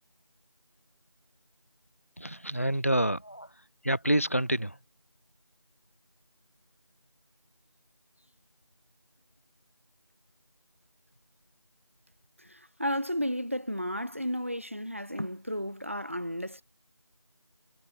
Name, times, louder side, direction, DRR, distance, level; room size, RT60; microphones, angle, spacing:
voice 1, 2.2-3.5 3.8-4.8, right 1 dB, 30° left, 1.1 m, -28 dB
voice 2, 12.4-16.6, equal, 25° right, 2.1 m, -33 dB
figure-of-eight pair, 180°, 16 cm